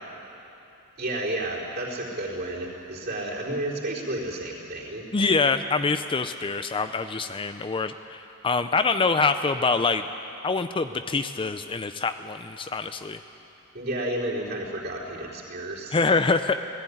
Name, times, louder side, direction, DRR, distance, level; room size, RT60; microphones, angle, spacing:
voice 1, 1.0-5.1 13.7-16.0, right 1 dB, 50° right, -4 dB, 4.0 m, -31 dB
voice 2, 5.1-10.0 10.4-13.2 15.9-16.6, left 4 dB, 25° left, 9 dB, 0.5 m, -25 dB
18.5 x 14.5 x 9.9 m, 2.9 s
head